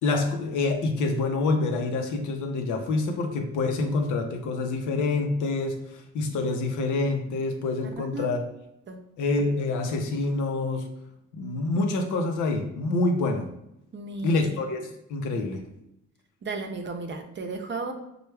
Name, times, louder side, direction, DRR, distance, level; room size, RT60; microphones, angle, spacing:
voice 1, 0.0-8.4 9.2-10.9 11.3-13.5 14.2-14.8 15.1-15.6, left 3 dB, 80° left, 4 dB, 0.7 m, -26 dB
voice 2, 8.0-8.3 8.9-9.0 13.9-14.5 16.4-17.9, right 3 dB, 40° right, 5 dB, 0.6 m, -34 dB
4.4 x 2.3 x 3.3 m, 0.84 s
cardioid pair, 90°, 30 cm